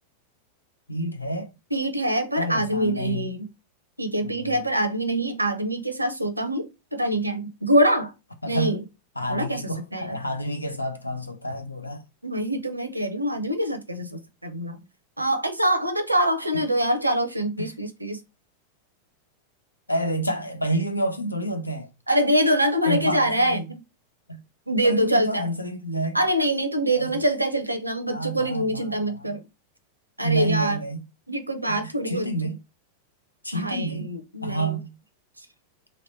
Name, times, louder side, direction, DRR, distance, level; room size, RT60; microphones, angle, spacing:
voice 1, 0.9-1.5 2.4-3.3 4.2-4.6 8.4-8.7 9.2-12.0 17.6-17.7 19.9-21.9 22.9-23.6 24.3-24.4 24.8-26.2 26.9-27.2 28.1-29.4 30.2-31.0 31.7-32.6 33.4-34.1 34.4-34.9, right 1 dB, 85° left, 0.6 m, -29 dB
voice 2, 1.7-3.5 4.0-8.1 8.5-8.8 9.3-10.2 12.2-14.8 15.2-18.2 22.1-23.8 24.7-25.5 26.1-29.4 30.2-30.8 31.3-32.3 33.5-34.7, right 1 dB, 85° right, 0.6 m, -24 dB
3.1 x 2.9 x 4.1 m
figure-of-eight pair, 90°, 0 cm